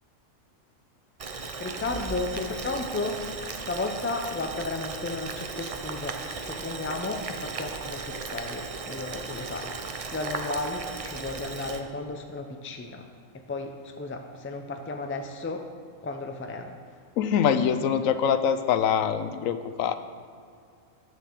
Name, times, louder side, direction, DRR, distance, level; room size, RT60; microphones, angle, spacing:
Boiling, 1.2-11.8, right 4 dB, 45° right, 0.4 m, -36 dB
voice 1, 1.6-3.2 3.5-13.1 13.3-15.7 16.0-16.8, left 3 dB, 20° left, 5 dB, 0.3 m, -34 dB
voice 2, 17.2-19.9, left 8 dB, 80° left, 10 dB, 1.0 m, -24 dB
9.4 x 6.3 x 6.6 m, 2.3 s
omnidirectional pair, 1.4 m